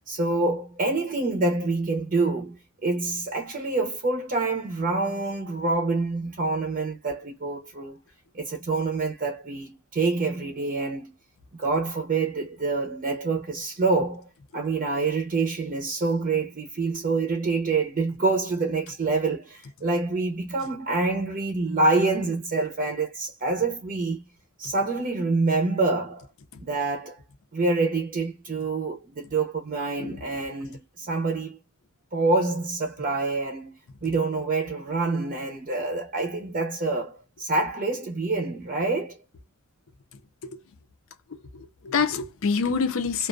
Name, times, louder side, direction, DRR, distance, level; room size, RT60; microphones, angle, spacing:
voice 1, 0.1-8.0 8.3-11.1 11.5-14.3 14.5-24.2 24.6-26.3 26.6-27.2 27.5-31.6 32.1-39.2, right 3 dB, 40° right, 0.6 m, -26 dB
voice 2, 41.3-43.3, left 5 dB, 65° left, 0.5 m, -27 dB
2.4 x 2.2 x 2.4 m
head